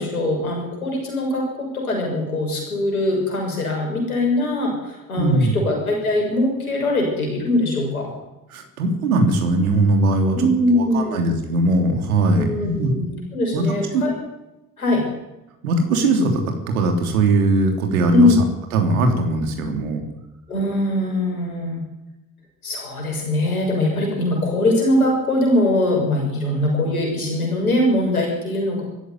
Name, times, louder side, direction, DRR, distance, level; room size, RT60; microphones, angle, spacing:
voice 1, 0.0-8.1 10.3-11.2 12.4-14.1 14.8-15.0 18.1-18.4 20.5-21.8 22.6-28.8, left 1 dB, 85° left, 0 dB, 6.5 m, -21 dB
voice 2, 5.2-5.5 8.5-10.4 10.7-12.9 13.5-13.7 13.9-14.0 15.6-18.3 18.7-20.0, right 2 dB, 80° right, 4 dB, 3.3 m, -20 dB
23.0 x 13.5 x 9.7 m, 0.95 s
figure-of-eight pair, 45°, 42 cm